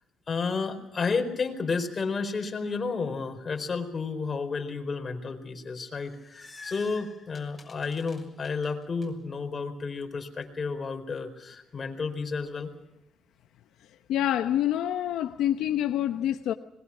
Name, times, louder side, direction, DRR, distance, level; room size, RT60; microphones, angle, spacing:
voice 1, 0.3-12.7, left 4 dB, 40° left, 4.5 m, -31 dB
sound 1, 5.8-9.1, left 4 dB, 20° left, 6.2 m, -48 dB
voice 2, 14.1-16.5, left 11 dB, 85° left, 0.9 m, -26 dB
26.5 x 21.5 x 6.1 m
cardioid pair, 90°, 0 cm